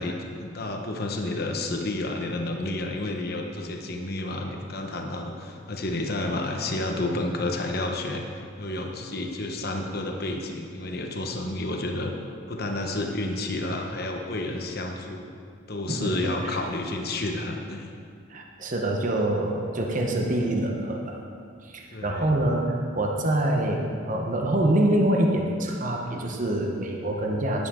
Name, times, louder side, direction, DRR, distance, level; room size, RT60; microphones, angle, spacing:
voice 1, 0.0-12.1 12.5-15.3 15.7-17.9 21.9-22.3, left 2 dB, 50° left, 2 dB, 1.0 m, -30 dB
voice 2, 18.3-21.2 21.6-27.7, right 1 dB, 40° right, 1 dB, 1.0 m, -25 dB
11.0 x 10.5 x 3.8 m, 2.2 s
head